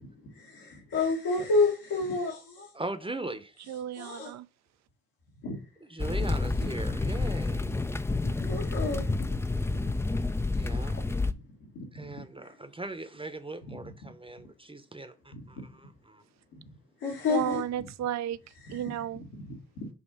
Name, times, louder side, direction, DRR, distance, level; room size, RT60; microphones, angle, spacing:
voice 1, 0.2-2.7 4.0-4.3 5.4-5.6 6.4-6.7 8.1-9.4 9.7-9.9 11.3-12.5 13.6-14.1 15.3-15.7 16.6-16.7 17.0-17.6 18.6-18.9 19.3-19.9, left 3 dB, 75° left, 1.9 m, -32 dB
voice 2, 2.7-3.5 5.9-7.8 10.5-11.0 11.9-15.6 16.1-16.2, right 2 dB, 15° right, 0.8 m, -39 dB
voice 3, 3.7-4.5 17.3-18.4 18.7-19.2, right 11 dB, 50° right, 0.5 m, -33 dB
sound 1, 6.0-11.3, left 3 dB, 10° left, 0.4 m, -29 dB
6.4 x 2.8 x 5.4 m
hypercardioid pair, 50°, 36 cm